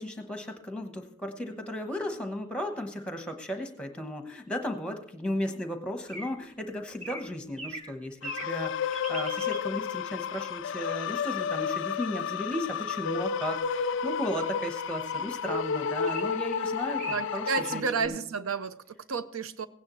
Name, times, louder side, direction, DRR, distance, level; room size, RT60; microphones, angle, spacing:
voice 1, 0.0-18.2, equal, 5° left, 6 dB, 1.0 m, -35 dB
sound 1, 6.1-6.3 7.0-7.2 7.6-8.0 8.2-8.6 8.9-9.6 16.0-16.2 16.6-16.7 16.9-17.2 18.0-18.1, right 1 dB, 30° right, 1.2 m, -39 dB
sound 2, 8.2-17.8, left 7 dB, 60° left, 0.4 m, -31 dB
voice 2, 17.0-19.7, right 5 dB, 75° right, 13 dB, 0.6 m, -31 dB
16.5 x 9.5 x 3.1 m, 0.67 s
head